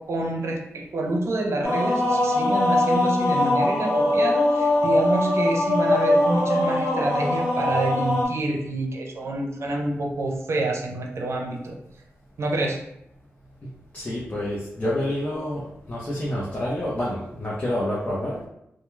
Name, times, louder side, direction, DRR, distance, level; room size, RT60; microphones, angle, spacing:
voice 1, 0.0-11.8 12.4-12.8, right 2 dB, 70° right, 1 dB, 0.5 m, -27 dB
sound 1, 1.6-8.2, left 1 dB, 70° left, 0.7 m, -22 dB
voice 2, 13.9-15.6 15.9-18.5, left 1 dB, 35° left, -7 dB, 0.7 m, -28 dB
2.3 x 2.2 x 3.1 m, 0.80 s
cardioid pair, 65°, 5 cm